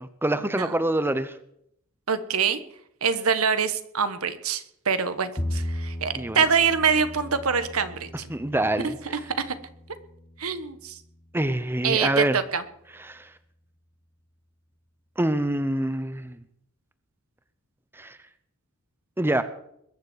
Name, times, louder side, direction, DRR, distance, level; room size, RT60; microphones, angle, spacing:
voice 1, 0.0-1.4 6.1-6.4 8.3-9.0 11.3-12.4 13.0-13.3 15.2-16.4 17.9-18.2 19.2-19.4, right 1 dB, 10° right, 12 dB, 0.8 m, -26 dB
voice 2, 2.1-2.6 3.0-8.3 10.4-11.0 11.8-12.6, right 6 dB, 80° right, 11 dB, 1.4 m, -25 dB
Bowed string instrument, 5.4-11.7, left 1 dB, 20° left, 1.4 m, -37 dB
21.5 x 7.4 x 8.1 m, 0.72 s
head